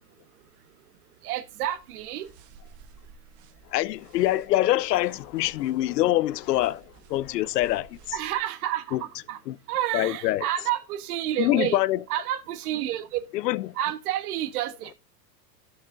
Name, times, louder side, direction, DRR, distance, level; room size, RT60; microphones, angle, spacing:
voice 1, 1.2-2.3 8.1-9.4 9.7-11.8 12.1-13.2 13.7-14.9, right 12 dB, 65° right, 1.4 m, -29 dB
sound 1, 1.5-8.4, right 5 dB, 40° right, 1.4 m, -53 dB
voice 2, 3.7-6.8 7.1-8.0 8.9-9.0 9.5-9.6 9.9-10.5 11.4-12.0 13.3-13.7, left 15 dB, 80° left, 0.6 m, -24 dB
15.0 x 6.7 x 2.6 m
hypercardioid pair, 125°, 49 cm